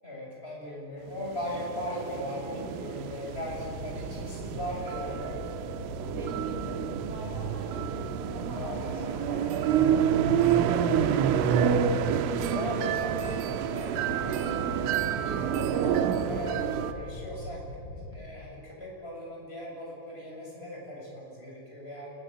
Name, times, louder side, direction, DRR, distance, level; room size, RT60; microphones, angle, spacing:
voice 1, 0.0-5.4 8.5-9.2 11.8-14.6 15.3-17.6 17.9-22.1, equal, 10° left, -3 dB, 7.4 m, -38 dB
sound 1, 1.2-16.9, right 8 dB, 80° right, 3.3 m, -28 dB
sound 2, 3.3-18.4, left 1 dB, 40° left, 2.7 m, -41 dB
voice 2, 6.0-8.1 8.3-12.0 14.7-15.1, right 2 dB, 50° right, 0 dB, 6.7 m, -44 dB
27.5 x 21.5 x 7.8 m, 2.8 s
omnidirectional pair, 6.0 m